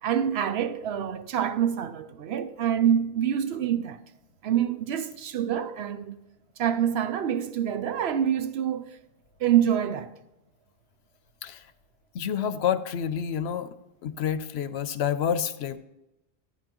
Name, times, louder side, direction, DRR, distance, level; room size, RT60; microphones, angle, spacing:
voice 1, 0.0-4.0 4.4-6.2 6.6-8.9 9.4-10.1, right 9 dB, 75° right, 0.9 m, -26 dB
voice 2, 12.1-13.7 14.0-15.8, left 8 dB, 80° left, 0.9 m, -28 dB
12.5 x 9.5 x 3.0 m
omnidirectional pair, 1.1 m